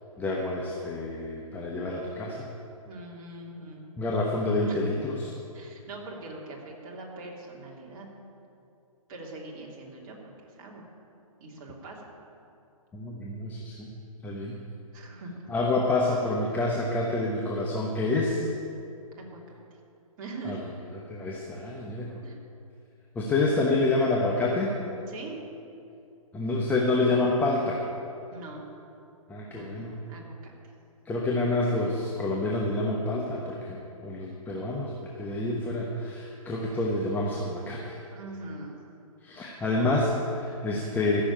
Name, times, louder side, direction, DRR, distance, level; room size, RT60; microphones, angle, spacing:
voice 1, 0.2-2.5 4.0-5.2 12.9-13.9 14.2-14.6 15.5-18.5 20.4-20.6 21.1-22.2 23.1-24.7 26.3-27.8 29.3-30.0 31.0-38.0 39.2-41.2, left 2 dB, 10° left, -3 dB, 1.1 m, -28 dB
voice 2, 2.8-3.9 4.6-4.9 5.5-8.1 9.1-10.9 11.4-12.1 14.9-15.5 19.1-19.4 20.2-20.6 22.2-22.4 25.1-25.4 28.3-28.7 29.5-30.5 38.1-38.8, right 2 dB, 35° right, -3 dB, 3.1 m, -42 dB
15.0 x 7.1 x 8.9 m, 2.7 s
hypercardioid pair, 135°, 18 cm